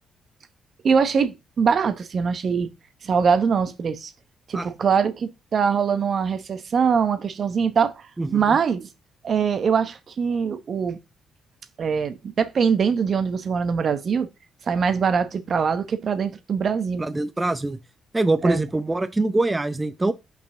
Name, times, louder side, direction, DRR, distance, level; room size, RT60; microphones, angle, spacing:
voice 1, 0.8-2.7 3.0-4.1 4.5-7.9 8.3-8.9 9.2-11.0 11.8-14.3 14.7-17.1 18.4-18.6, right 6 dB, 55° right, 1.0 m, -22 dB
voice 2, 8.2-8.6 17.0-17.8 18.1-20.1, right 2 dB, 20° right, 0.8 m, -23 dB
5.4 x 5.2 x 3.9 m
supercardioid pair, 55°, 0 cm